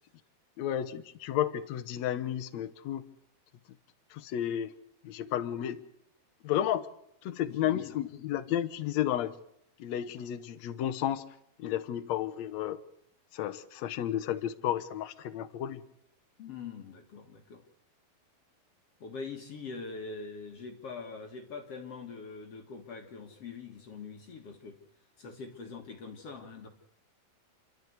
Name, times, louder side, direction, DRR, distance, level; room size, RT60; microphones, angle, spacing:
voice 1, 0.6-3.0 4.1-4.7 5.0-5.8 6.4-6.9 7.2-9.3 9.8-11.2 11.6-12.8 13.3-15.8, left 11 dB, 70° left, 13 dB, 1.7 m, -32 dB
voice 2, 7.5-8.0 16.4-17.6 19.0-24.8 25.2-26.7, left 4 dB, 50° left, 4 dB, 2.3 m, -43 dB
29.0 x 12.5 x 8.1 m, 0.76 s
omnidirectional pair, 4.4 m